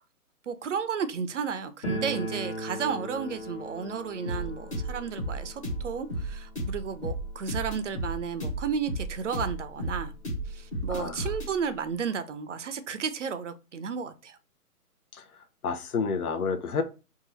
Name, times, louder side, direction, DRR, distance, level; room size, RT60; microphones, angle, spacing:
voice 1, 0.5-10.1 10.5-14.4, right 6 dB, 55° right, 0.5 m, -33 dB
sound 1, 1.8-8.5 8.8-8.9 9.1-9.2 10.0-10.1 10.4-11.6, right 1 dB, 50° left, 1.3 m, -39 dB
sound 2, 4.2-11.5, right 1 dB, 20° left, 0.7 m, -33 dB
voice 2, 10.9-11.3 15.1-15.2 15.6-16.8, left 5 dB, 75° left, 0.8 m, -29 dB
2.8 x 2.4 x 4.2 m
hypercardioid pair, 150°, 45 cm